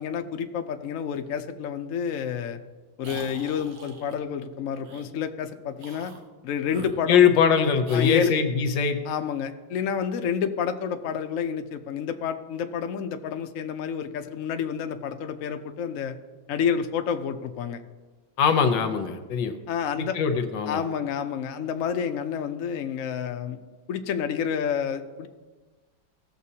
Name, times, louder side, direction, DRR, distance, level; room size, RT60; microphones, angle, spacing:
voice 1, 0.0-2.6 3.0-6.1 6.4-7.2 7.9-8.3 9.1-16.1 16.5-17.8 19.7-20.2 20.7-23.6 23.9-25.3, left 7 dB, 90° left, 7 dB, 0.7 m, -29 dB
sound 1, 3.0-4.2 4.8-5.1 5.8-6.2 6.7-7.5 7.8-8.4, right 3 dB, 55° right, 1.3 m, -43 dB
voice 2, 7.1-9.0 18.4-19.6 20.1-20.8, left 7 dB, 70° left, 8 dB, 1.5 m, -21 dB
16.5 x 6.9 x 2.8 m, 1.3 s
omnidirectional pair, 2.2 m